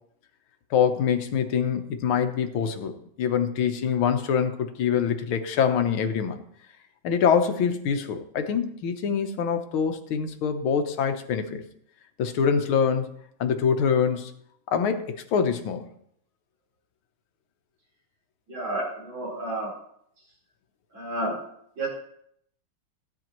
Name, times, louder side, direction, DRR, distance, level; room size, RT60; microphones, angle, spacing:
voice 1, 0.7-2.9 3.2-6.4 7.0-11.6 12.2-13.1 13.4-14.3 14.7-15.9, left 7 dB, 90° left, 7 dB, 1.8 m, -24 dB
voice 2, 18.5-19.7 20.9-21.5 21.8-21.9, right 1 dB, 70° right, -5 dB, 4.9 m, -31 dB
15.5 x 9.4 x 3.0 m, 0.71 s
omnidirectional pair, 2.2 m